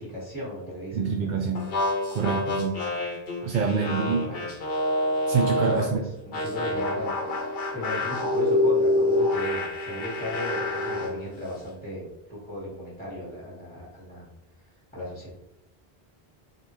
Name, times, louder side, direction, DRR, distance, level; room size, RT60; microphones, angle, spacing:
voice 1, 0.0-1.5 2.1-2.2 3.4-3.9 4.3-4.6 5.5-14.3 14.5-15.3, left 1 dB, 10° left, -9 dB, 1.6 m, -37 dB
voice 2, 0.9-1.6 2.1-2.8 3.4-4.3 5.3-6.0, right 5 dB, 60° right, 1 dB, 0.6 m, -26 dB
sound 1, 1.5-5.9 6.3-11.2, left 2 dB, 70° left, 1.0 m, -27 dB
4.0 x 3.6 x 3.1 m, 0.85 s
omnidirectional pair, 1.0 m